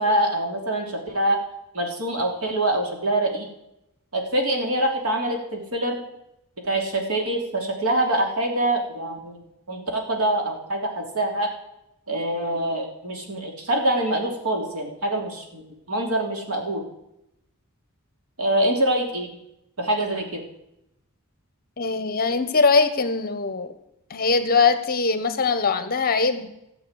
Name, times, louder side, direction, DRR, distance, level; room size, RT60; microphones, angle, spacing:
voice 1, 0.0-1.4 1.7-3.5 4.1-6.0 6.6-11.5 12.1-15.6 15.9-16.8 18.4-19.3 19.8-20.4, right 1 dB, 75° right, 2 dB, 3.2 m, -25 dB
voice 2, 21.8-23.7 24.1-26.5, left 4 dB, 40° left, 10 dB, 1.2 m, -21 dB
14.5 x 7.8 x 8.2 m, 0.84 s
head